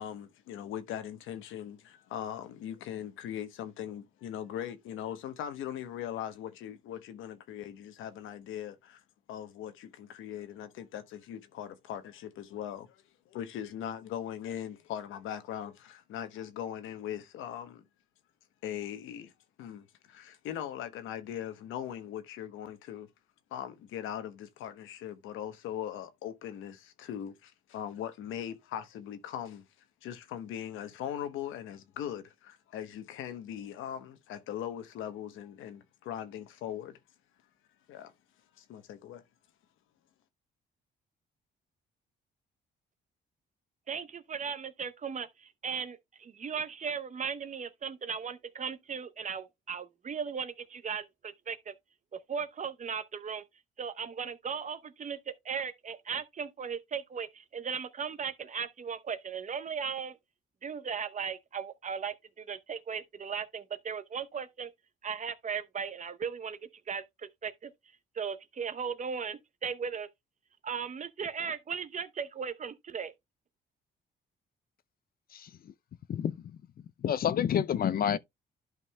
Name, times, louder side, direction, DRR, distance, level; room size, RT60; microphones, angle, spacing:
voice 1, 0.0-9.0 9.3-17.9 18.6-19.3 19.6-23.1 23.5-29.6 30.0-37.0 37.9-38.1 38.6-39.2, left 10 dB, 90° left, 1.0 m, -40 dB
voice 2, 43.9-51.7 52.1-53.4 53.8-60.2 60.6-64.7 65.0-66.6 66.9-67.7 68.1-70.1 70.6-73.1, right 6 dB, 40° right, 0.7 m, -37 dB
voice 3, 77.0-78.2, left 9 dB, 50° left, 0.5 m, -28 dB
11.5 x 5.3 x 2.2 m
cardioid pair, 90°, 20 cm